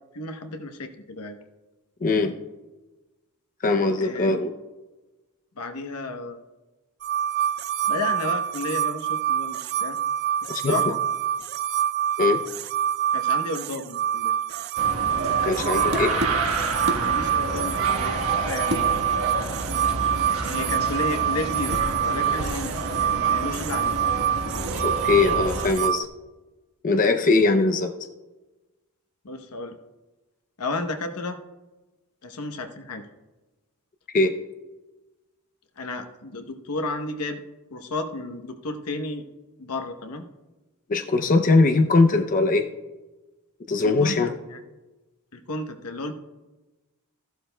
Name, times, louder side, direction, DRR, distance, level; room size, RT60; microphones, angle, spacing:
voice 1, 0.1-1.4 4.0-4.3 5.6-6.4 7.9-10.0 10.7-11.0 13.1-14.3 17.0-19.0 20.4-24.0 29.2-29.7 30.6-31.4 32.2-33.1 35.8-37.4 37.7-39.2 39.6-40.2 43.8-44.6 45.3-46.1, left 2 dB, 80° left, 6 dB, 0.9 m, -32 dB
voice 2, 2.0-2.4 3.6-4.5 10.5-10.7 12.2-12.4 15.4-16.2 24.8-26.1 26.8-27.9 34.1-34.3 40.9-42.7 43.7-44.3, left 3 dB, 40° left, 5 dB, 0.5 m, -21 dB
sound 1, 7.0-26.0, right 10 dB, 45° right, 0.3 m, -26 dB
sound 2, 14.8-25.7, right 2 dB, 70° right, 1.3 m, -29 dB
15.0 x 11.5 x 2.2 m, 1.1 s
head